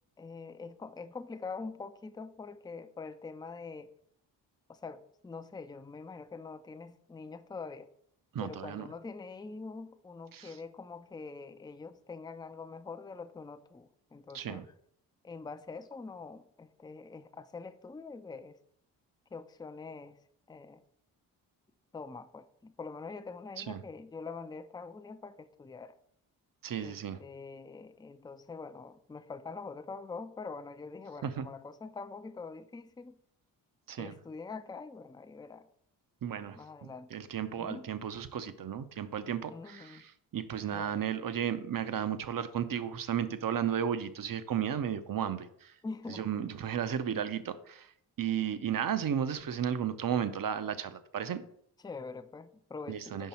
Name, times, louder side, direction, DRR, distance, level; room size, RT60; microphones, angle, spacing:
voice 1, 0.2-3.9 4.7-7.9 8.4-14.7 15.2-18.6 19.3-20.2 20.5-20.8 21.9-25.9 26.8-33.1 33.9-35.7 36.6-37.1 37.5-37.9 39.5-40.0 40.7-40.9 45.8-46.3 51.8-53.3, left 4 dB, 10° left, 10 dB, 0.5 m, -44 dB
voice 2, 8.3-8.9 10.3-10.6 14.3-14.7 23.6-23.8 26.6-27.2 31.2-31.5 33.9-34.1 36.2-45.7 46.1-47.9 48.2-51.4 52.9-53.3, right 9 dB, 45° right, 12 dB, 0.7 m, -34 dB
5.6 x 5.4 x 4.3 m, 0.67 s
hypercardioid pair, 40°, 49 cm